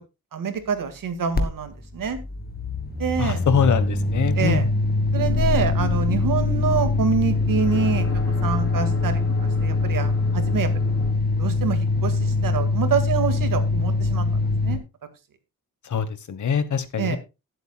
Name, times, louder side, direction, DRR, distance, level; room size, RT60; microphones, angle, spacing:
voice 1, 0.3-2.2 3.0-3.4 4.3-4.7 5.1-8.1 8.4-10.9 11.4-14.3 14.6-14.8 17.0-17.2, right 6 dB, 80° right, 9 dB, 2.0 m, -26 dB
sound 1, 1.3-14.8, left 3 dB, 30° left, 1.6 m, -23 dB
voice 2, 3.2-4.6 15.9-17.2, left 7 dB, 60° left, 13 dB, 1.3 m, -23 dB
sound 2, 5.1-11.1, left 5 dB, 45° left, 3.9 m, -32 dB
18.5 x 8.0 x 2.3 m, 0.27 s
wide cardioid pair, 175°, 33 cm